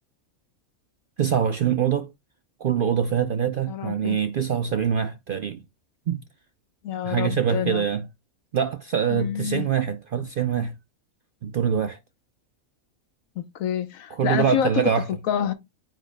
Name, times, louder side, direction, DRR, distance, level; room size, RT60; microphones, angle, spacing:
voice 1, 1.2-2.1 2.6-5.6 6.1-6.2 7.0-8.1 8.5-10.7 11.4-12.0 14.1-15.1, right 8 dB, 65° right, 0.5 m, -24 dB
voice 2, 3.7-4.2 6.8-7.8 9.1-9.7 13.4-14.9 15.3-15.5, left 9 dB, 75° left, 1.2 m, -27 dB
9.0 x 5.0 x 2.2 m
omnidirectional pair, 1.4 m